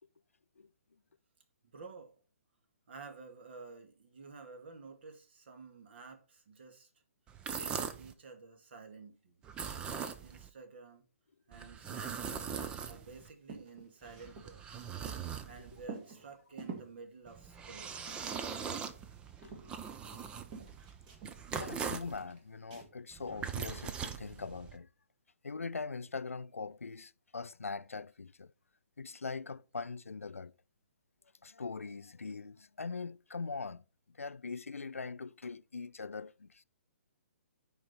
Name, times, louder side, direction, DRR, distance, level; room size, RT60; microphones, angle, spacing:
voice 1, 1.7-2.1 2.9-6.9 7.5-9.4 9.9-11.1 11.5-12.5 12.8-14.6 15.4-18.1, right 4 dB, 50° right, 2.1 m, -51 dB
sound 1, 7.3-8.1 9.4-10.5 11.5-13.3 14.0-15.9 17.3-22.2 23.1-24.8, right 7 dB, 15° right, 0.6 m, -41 dB
sound 2, 11.9-12.6 12.8-12.9 13.2-15.5 15.8-17.0 17.6-18.5 18.8-20.2 20.5-21.7 22.1-22.9, right 5 dB, 35° right, 2.2 m, -49 dB
voice 2, 19.4-19.7 21.5-24.9 25.4-28.5 29.0-30.5 31.4-33.8 34.2-36.6, left 4 dB, 75° left, 0.4 m, -42 dB
10.0 x 4.9 x 4.1 m
figure-of-eight pair, 130°, 8 cm